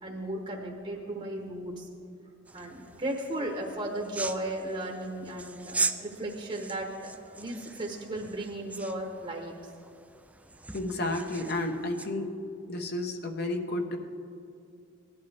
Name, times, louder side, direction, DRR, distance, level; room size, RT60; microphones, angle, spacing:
voice 1, 0.0-1.9 2.5-9.5, right 1 dB, 30° right, 1 dB, 1.1 m, -35 dB
sound 1, 2.4-12.1, right 3 dB, 5° right, 0.3 m, -39 dB
voice 2, 10.7-12.3 12.7-14.0, left 2 dB, 55° left, 4 dB, 1.1 m, -31 dB
18.0 x 11.5 x 3.5 m, 2.5 s
head